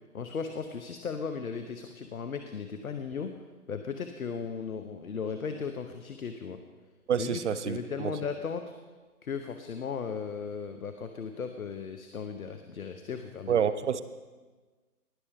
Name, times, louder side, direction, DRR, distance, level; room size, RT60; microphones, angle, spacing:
voice 1, 0.1-3.3 3.7-6.6 7.2-7.4 7.7-8.7 9.2-13.6, left 6 dB, 65° left, 8 dB, 1.0 m, -36 dB
voice 2, 7.1-8.1 13.5-14.0, right 8 dB, 50° right, 14 dB, 0.7 m, -28 dB
19.5 x 6.8 x 5.0 m, 1.3 s
figure-of-eight pair, 145°, 46 cm